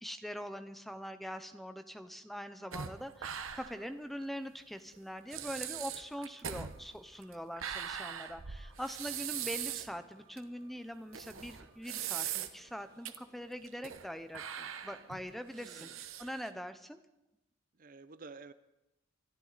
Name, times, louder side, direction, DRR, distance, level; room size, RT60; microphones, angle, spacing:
voice 1, 0.0-17.0, equal, ahead, 9 dB, 0.7 m, -43 dB
sound 1, 0.7-16.5, right 2 dB, 20° right, 6.8 m, -68 dB
sound 2, 2.7-3.9 4.2-4.3 4.9-5.0 5.3-10.0 10.4-10.5 11.1-12.7 13.1-13.2 13.6-14.1 14.3-16.5, right 9 dB, 80° right, 1.0 m, -41 dB
voice 2, 15.5-16.0 17.7-18.5, right 4 dB, 40° right, 13 dB, 0.5 m, -51 dB
24.5 x 12.5 x 4.1 m, 0.95 s
head